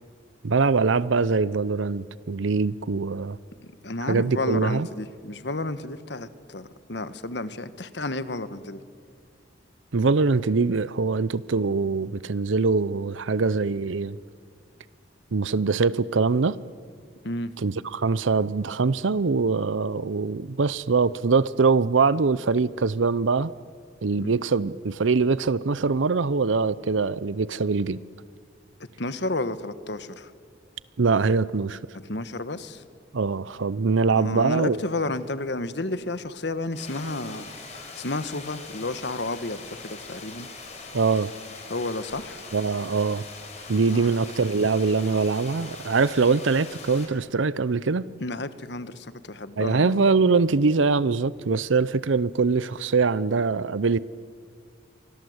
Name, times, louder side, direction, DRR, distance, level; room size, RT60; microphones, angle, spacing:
voice 1, 0.4-3.4 4.0-4.9 9.9-14.2 15.3-16.6 17.6-23.5 24.0-28.0 31.0-31.8 33.1-34.8 40.9-41.3 42.5-43.3 43.7-48.0 49.6-54.0, right 4 dB, 80° right, 0.6 m, -23 dB
voice 2, 3.8-8.8 17.2-17.5 24.2-24.3 29.0-30.3 32.1-32.8 34.2-37.5 37.9-40.5 41.7-42.4 43.9-44.1 48.2-49.9, left 2 dB, 60° left, 1.3 m, -31 dB
sound 1, 36.7-47.1, left 3 dB, 35° left, 4.9 m, -42 dB
29.5 x 24.5 x 8.0 m
head